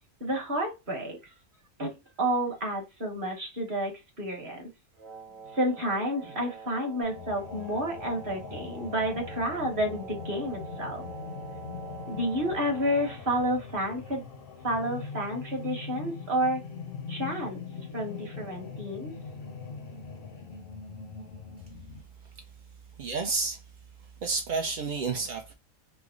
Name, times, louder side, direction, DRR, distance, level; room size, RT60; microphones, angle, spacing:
voice 1, 0.2-1.2 1.8-3.9 4.2-4.7 5.5-11.0 12.1-14.2 14.6-16.6 17.1-17.6 17.9-19.1, equal, 45° right, 1.2 m, -30 dB
Wind instrument woodwind instrument, 4.9-13.3, right 5 dB, 85° right, 1.1 m, -45 dB
sound 1, 7.0-22.0, left 5 dB, 55° left, 0.7 m, -41 dB
voice 2, 23.0-23.7 24.2-25.5, right 4 dB, 70° right, 0.4 m, -30 dB
3.3 x 2.0 x 3.5 m
omnidirectional pair, 1.4 m